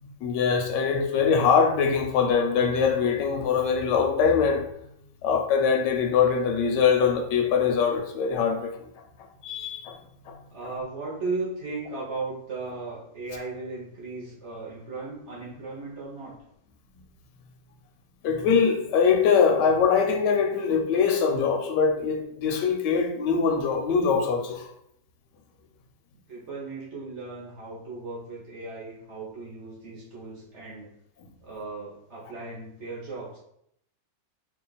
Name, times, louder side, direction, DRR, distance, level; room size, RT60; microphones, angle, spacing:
voice 1, 0.2-4.6 5.2-8.9 9.4-10.0 10.3-10.4 18.2-24.7, left 6 dB, 80° left, 1.2 m, -23 dB
voice 2, 10.5-16.4 26.3-30.9 31.4-33.4, right 3 dB, 50° right, 0.9 m, -36 dB
3.0 x 2.4 x 3.8 m
omnidirectional pair, 1.9 m